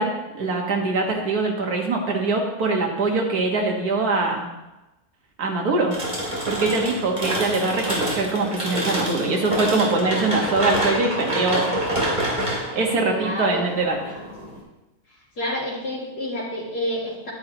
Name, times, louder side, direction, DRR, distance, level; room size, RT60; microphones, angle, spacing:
voice 1, 0.0-4.5 5.4-6.0 6.5-11.7 12.7-14.0, right 3 dB, 75° right, 1 dB, 2.0 m, -23 dB
sound 1, 5.9-14.6, right 1 dB, 30° right, 2.8 m, -27 dB
voice 2, 13.0-13.6 15.4-17.3, left 1 dB, 90° left, -5 dB, 3.2 m, -29 dB
10.5 x 10.0 x 3.0 m, 1.0 s
omnidirectional pair, 1.6 m